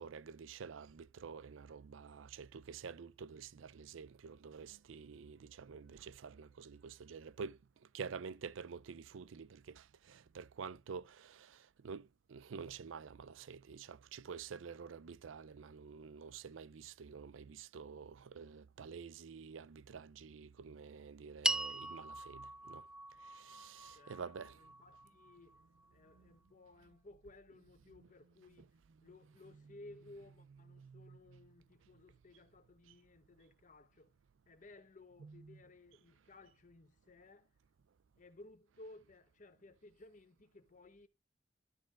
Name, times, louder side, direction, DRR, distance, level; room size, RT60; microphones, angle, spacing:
voice 1, 0.0-22.9 23.2-24.6 26.1-26.3 30.7-31.2 35.2-35.6, right 6 dB, 85° right, 0.5 m, -49 dB
sound 1, 21.4-25.9, right 2 dB, 5° right, 0.3 m, -41 dB
voice 2, 23.9-25.6 25.9-28.7 29.0-34.1 34.5-37.5 38.2-41.1, left 2 dB, 45° left, 1.1 m, -58 dB
12.0 x 6.1 x 2.4 m
head